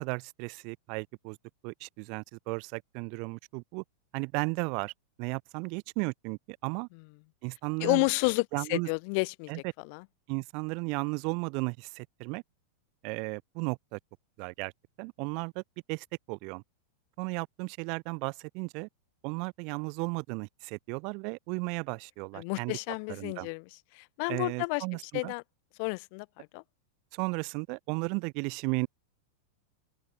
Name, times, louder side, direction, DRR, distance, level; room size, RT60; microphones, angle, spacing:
voice 1, 0.0-1.4 1.6-3.8 4.1-4.9 5.2-6.9 7.4-8.0 8.5-8.9 9.5-9.6 10.3-12.4 13.0-14.0 14.4-14.7 15.0-15.6 15.9-16.6 17.2-18.9 19.2-22.8 23.1-23.5 24.3-25.3 27.1-28.9, right 34 dB, 35° right, 1.3 m, -34 dB
voice 2, 7.8-9.5 9.8-10.0 22.3-23.6 23.9-25.4 25.8-26.6, left 35 dB, 35° left, 2.5 m, -31 dB
open air
supercardioid pair, 175°, 0 cm